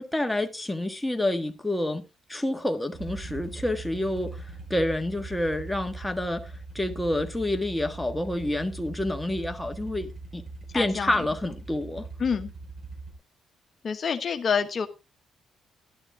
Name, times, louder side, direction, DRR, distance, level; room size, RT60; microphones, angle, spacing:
voice 1, 0.0-2.0 2.3-10.4 10.7-12.1, left 1 dB, 5° left, 1.6 m, -28 dB
sound 1, 2.9-13.1, right 3 dB, 45° right, 4.9 m, -41 dB
voice 2, 10.7-11.1 12.2-12.5 13.8-14.9, left 6 dB, 45° left, 1.1 m, -27 dB
12.0 x 11.5 x 3.6 m
cardioid pair, 90°, 0 cm